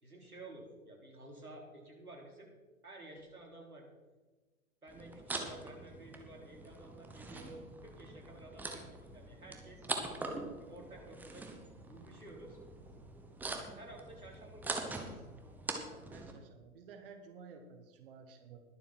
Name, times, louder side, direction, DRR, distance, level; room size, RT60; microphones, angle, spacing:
voice 1, 0.0-2.5 2.8-3.8 4.8-9.9 10.6-11.5 11.9-12.6 13.6-15.3, right 2 dB, 90° right, 0 dB, 3.9 m, -52 dB
sound 1, 4.9-16.3, right 2 dB, 5° right, 1.0 m, -44 dB
voice 2, 16.1-18.6, right 5 dB, 40° right, 6 dB, 1.4 m, -53 dB
21.0 x 7.3 x 4.4 m, 1.2 s
figure-of-eight pair, 120°, 42 cm